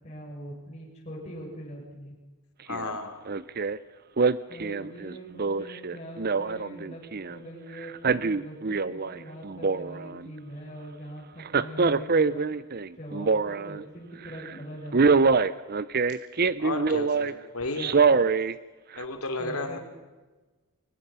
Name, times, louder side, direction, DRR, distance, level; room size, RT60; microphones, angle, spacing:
voice 1, 0.0-2.1 4.5-7.0 7.3-12.5 13.0-15.2 19.4-19.8, equal, 30° left, -4 dB, 6.6 m, -42 dB
voice 2, 2.7-3.3 16.6-18.0 19.0-19.8, left 2 dB, 75° left, 6 dB, 3.2 m, -33 dB
Male speech man speaking, 2.7-2.9 3.3-3.8 4.2-7.4 7.8-9.2 9.4-10.3 11.4-13.8 14.2-14.5 14.9-17.3 17.8-18.5 19.0-19.1, right 4 dB, 45° right, 0.7 m, -24 dB
23.0 x 20.5 x 5.7 m, 1.2 s
head